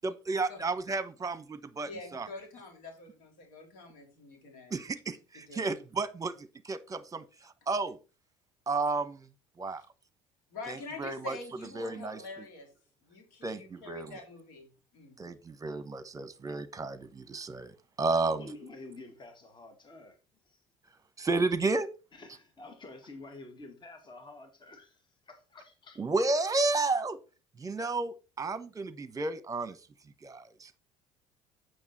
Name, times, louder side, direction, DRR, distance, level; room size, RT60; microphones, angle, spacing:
voice 1, 0.0-2.3 4.7-8.0 8.7-9.3 9.6-9.8 10.7-11.4 11.7-12.2 13.4-14.2 15.2-17.7 18.0-18.5 21.2-21.9 26.0-27.2 27.6-29.8 30.2-30.8, right 3 dB, 20° right, 1.2 m, -32 dB
voice 2, 1.8-4.8 5.5-5.7 10.5-12.7 13.0-14.7 14.9-15.1, left 3 dB, 65° left, 3.3 m, -45 dB
voice 3, 18.2-20.2 20.5-20.6 22.1-26.1, left 2 dB, 30° left, 2.1 m, -49 dB
8.6 x 6.5 x 4.2 m
hypercardioid pair, 60°, 16 cm